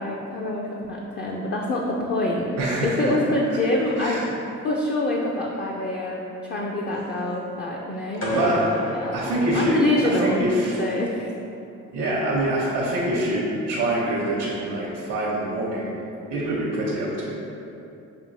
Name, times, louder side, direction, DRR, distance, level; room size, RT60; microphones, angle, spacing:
voice 1, 0.0-2.6 2.8-4.2 4.6-8.3 8.9-9.1 9.5-10.4 10.8-11.3, left 1 dB, 35° left, -3 dB, 0.5 m, -25 dB
voice 2, 2.6-3.1 4.0-4.3 8.3-8.6 9.1-10.8 11.9-15.9 16.3-17.4, right 1 dB, 90° right, -6 dB, 0.9 m, -25 dB
sound 1, 8.2-10.3, left 1 dB, 60° left, 1.0 m, -31 dB
6.8 x 2.7 x 2.6 m, 2.8 s
cardioid pair, 90°, 30 cm